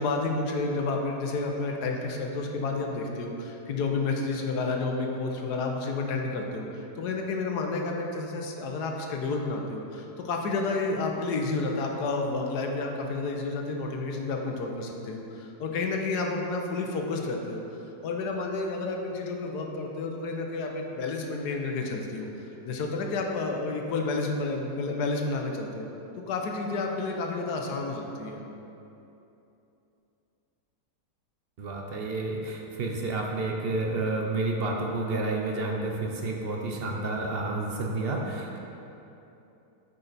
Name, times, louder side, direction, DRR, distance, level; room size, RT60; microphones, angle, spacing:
voice 1, 0.0-17.6 18.0-25.9 26.3-28.4, left 3 dB, 75° left, 2 dB, 1.3 m, -30 dB
voice 2, 31.6-38.6, right 2 dB, 55° right, 1 dB, 0.6 m, -30 dB
8.8 x 5.6 x 4.1 m, 2.9 s
omnidirectional pair, 1.8 m